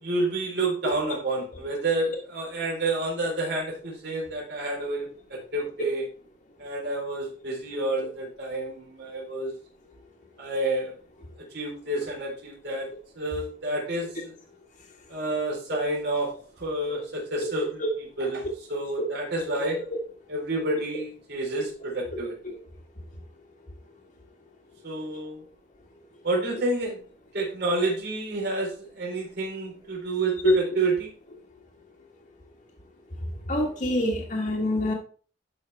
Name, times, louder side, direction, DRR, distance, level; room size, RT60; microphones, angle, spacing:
voice 1, 0.0-6.1 6.6-9.5 10.4-10.9 11.5-12.9 13.2-14.4 15.1-16.3 16.6-19.8 20.3-22.4 24.8-25.4 26.2-27.0 27.3-31.1, right 2 dB, 60° right, 4.0 m, -29 dB
voice 2, 33.5-34.9, left 1 dB, 45° left, 1.6 m, -24 dB
11.5 x 5.7 x 3.4 m
head